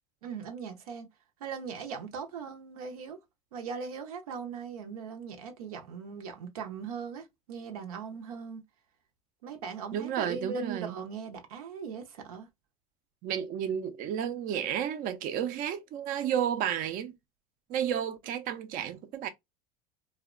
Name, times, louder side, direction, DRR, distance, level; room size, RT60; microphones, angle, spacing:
voice 1, 0.2-1.1 1.4-3.2 3.5-8.6 9.4-12.5, right 6 dB, 85° right, 0.7 m, -39 dB
voice 2, 9.9-11.0 13.2-17.2 17.7-19.3, right 9 dB, 50° right, 0.5 m, -32 dB
2.7 x 2.1 x 2.4 m
hypercardioid pair, 95°, 18 cm